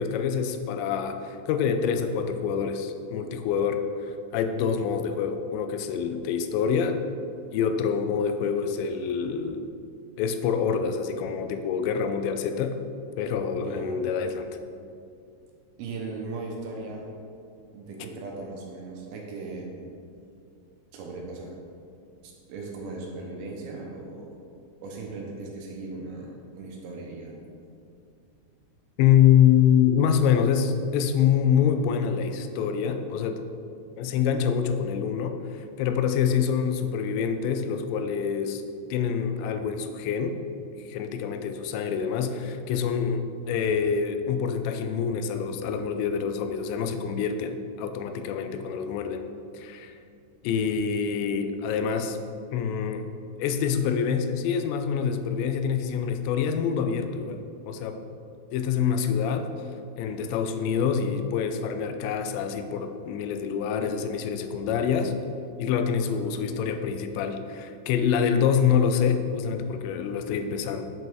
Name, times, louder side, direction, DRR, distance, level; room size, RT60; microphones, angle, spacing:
voice 1, 0.0-7.0 7.5-9.7 10.2-12.8 13.2-14.5 29.0-33.5 34.0-38.6 38.9-40.4 40.9-49.2 49.5-50.0 50.4-52.2 52.5-53.1 53.4-58.0 58.5-59.5 60.0-65.1 65.6-70.9, left 7 dB, 85° left, 8 dB, 2.8 m, -26 dB
voice 2, 13.6-14.0 15.8-17.1 17.7-19.8 20.9-21.6 22.2-24.4 24.8-27.3, right 3 dB, 75° right, -1 dB, 2.4 m, -38 dB
7.7 x 5.3 x 4.6 m, 2.4 s
omnidirectional pair, 5.1 m